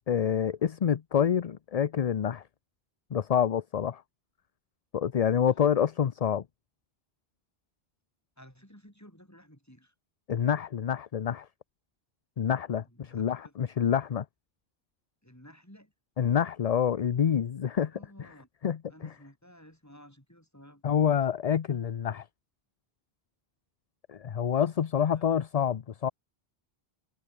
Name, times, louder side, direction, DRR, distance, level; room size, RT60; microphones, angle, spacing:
voice 1, 0.1-2.4 3.1-4.0 4.9-6.4 10.3-11.5 12.4-14.3 16.2-17.9 18.6-18.8 20.8-22.3 24.1-26.1, left 8 dB, 45° left, 0.6 m, -27 dB
voice 2, 8.4-9.9 12.9-13.5 15.2-15.9 17.8-18.5 18.9-20.8 25.1-25.3, equal, 15° left, 7.9 m, -54 dB
omnidirectional pair, 1.0 m